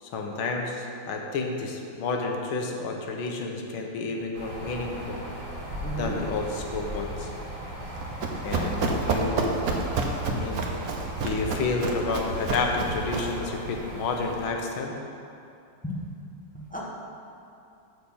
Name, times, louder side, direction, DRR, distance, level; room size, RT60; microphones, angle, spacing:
voice 1, 0.0-5.2 5.9-7.3 8.4-9.7 10.3-10.6 11.2-15.0, left 3 dB, 80° left, 1 dB, 1.8 m, -30 dB
sound 1, 4.3-14.5, right 1 dB, 40° right, 2.3 m, -38 dB
voice 2, 5.8-6.2 15.8-16.1 16.5-16.8, equal, 5° left, -5 dB, 0.7 m, -34 dB
Run, 7.8-13.4, right 3 dB, 60° right, 1.1 m, -29 dB
11.0 x 4.3 x 7.1 m, 2.7 s
omnidirectional pair, 2.3 m